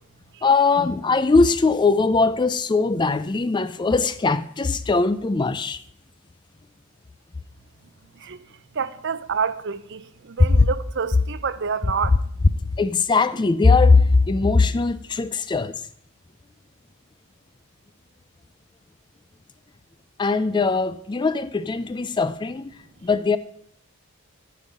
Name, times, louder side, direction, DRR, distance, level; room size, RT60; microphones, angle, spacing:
voice 1, 0.4-5.8 10.5-10.7 12.8-15.8 20.2-22.7 23.0-23.4, left 4 dB, 20° left, 0.3 m, -20 dB
voice 2, 8.8-12.2, right 6 dB, 55° right, 0.6 m, -28 dB
10.0 x 5.3 x 8.2 m
head